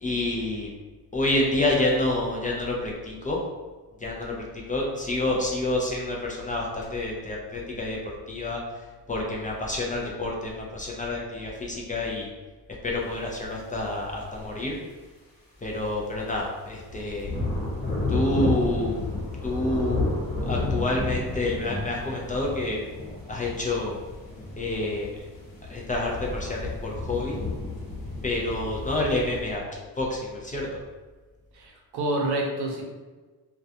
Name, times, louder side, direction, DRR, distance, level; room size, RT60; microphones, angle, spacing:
voice 1, 0.0-0.7 1.1-3.4 4.0-8.6 9.1-12.3 12.8-14.8 15.6-17.3 18.1-18.9 19.4-20.0 20.5-22.8 23.3-23.9 24.6-25.1 25.7-27.4 28.2-29.6 30.0-30.7, left 2 dB, 20° left, -2 dB, 0.4 m, -28 dB
sound 1, 16.1-16.4 16.7-29.4, left 2 dB, 60° left, 1.0 m, -31 dB
voice 2, 31.5-32.8, right 1 dB, 75° right, 0 dB, 0.7 m, -28 dB
2.3 x 2.2 x 2.7 m, 1.3 s
cardioid pair, 100°, 39 cm